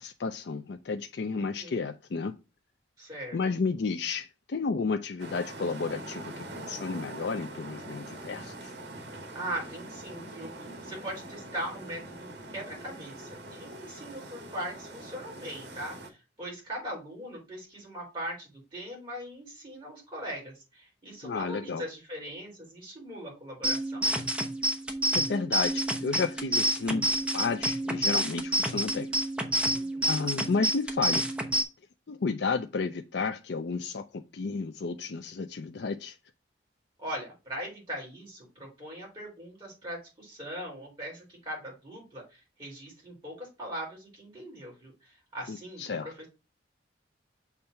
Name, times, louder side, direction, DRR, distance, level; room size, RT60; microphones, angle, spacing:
voice 1, 0.0-2.3 3.3-8.7 21.2-21.8 25.1-27.0 27.3-29.1 30.1-31.2 32.1-36.2 45.5-46.1, left 4 dB, 65° left, 0.4 m, -32 dB
voice 2, 1.3-1.8 3.0-3.4 9.3-24.1 29.7-30.2 37.0-46.3, equal, 25° right, 3.3 m, -40 dB
sound 1, 5.2-16.1, right 1 dB, 65° right, 1.6 m, -43 dB
sound 2, 23.6-31.6, right 1 dB, 5° right, 0.9 m, -29 dB
7.0 x 3.3 x 5.7 m
head